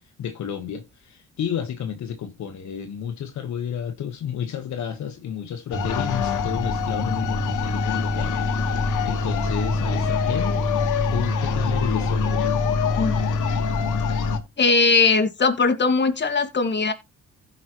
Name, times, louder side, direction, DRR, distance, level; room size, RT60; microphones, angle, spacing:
voice 1, 0.2-10.7 11.1-12.5, left 8 dB, 70° left, 1.4 m, -31 dB
sound 1, 5.7-14.4, left 4 dB, 85° left, 1.6 m, -24 dB
voice 2, 14.6-16.9, left 4 dB, 35° left, 2.0 m, -19 dB
16.0 x 5.7 x 3.1 m
cardioid pair, 90°, 30 cm